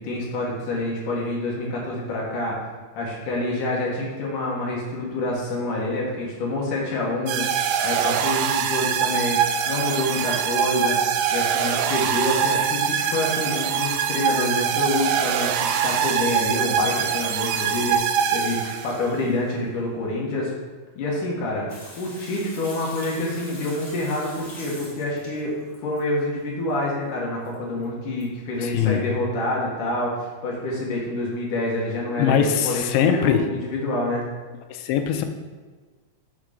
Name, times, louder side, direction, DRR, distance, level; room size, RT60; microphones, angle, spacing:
voice 1, 0.0-2.6 3.0-11.0 11.3-20.5 21.0-21.7 22.0-25.5 25.8-34.2, left 2 dB, 60° left, -3 dB, 2.4 m, -27 dB
sound 1, 7.3-19.1, right 8 dB, 80° right, 2.5 m, -23 dB
Water tap faucet / Sink (filling or washing), 21.7-26.0 27.4-27.5 27.8-27.9 28.2-28.3, left 1 dB, 30° left, 1.7 m, -43 dB
voice 2, 28.6-29.0 32.2-33.5 34.7-35.2, left 8 dB, 80° left, 7 dB, 2.9 m, -21 dB
7.4 x 6.3 x 5.1 m, 1.4 s
omnidirectional pair, 5.3 m